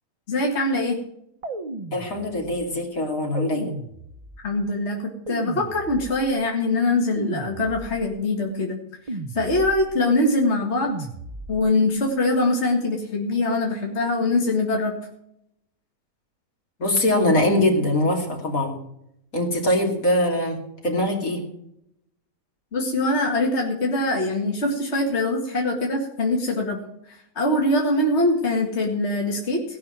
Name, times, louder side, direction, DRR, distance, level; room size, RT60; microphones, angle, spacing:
voice 1, 0.3-1.0 4.4-8.8 9.3-10.9 11.5-14.9 22.7-26.8 27.4-29.6, left 2 dB, 50° left, 0 dB, 2.3 m, -23 dB
sound 1, 1.4-2.6 3.3-4.5 5.3-6.4 7.2-8.2 9.1-10.0 10.9-11.8, right 2 dB, 30° right, 0.9 m, -35 dB
voice 2, 1.9-3.8 13.3-13.4 16.8-18.8 19.3-21.4, left 1 dB, 75° left, 1 dB, 3.3 m, -22 dB
18.0 x 6.0 x 8.9 m, 0.76 s
omnidirectional pair, 1.5 m